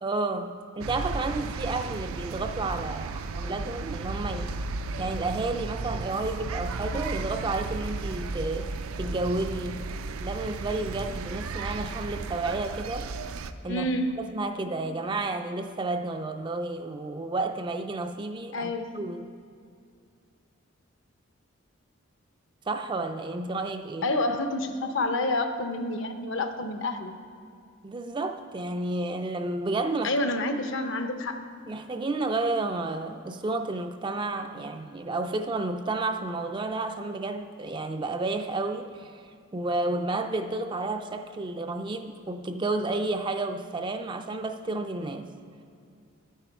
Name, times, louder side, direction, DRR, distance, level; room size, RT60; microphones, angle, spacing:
voice 1, 0.0-4.6 5.0-9.9 10.2-13.1 13.6-13.9 14.2-19.3 22.7-24.1 27.8-30.1 31.7-39.2 39.5-45.3, right 2 dB, 20° right, 7 dB, 0.3 m, -31 dB
sound 1, 0.8-13.5, right 3 dB, 80° right, 0.4 m, -34 dB
voice 2, 13.7-14.3 18.5-18.9 24.0-27.1 30.0-31.4, left 2 dB, 60° left, 7 dB, 0.7 m, -28 dB
10.5 x 9.0 x 4.6 m, 2.4 s
head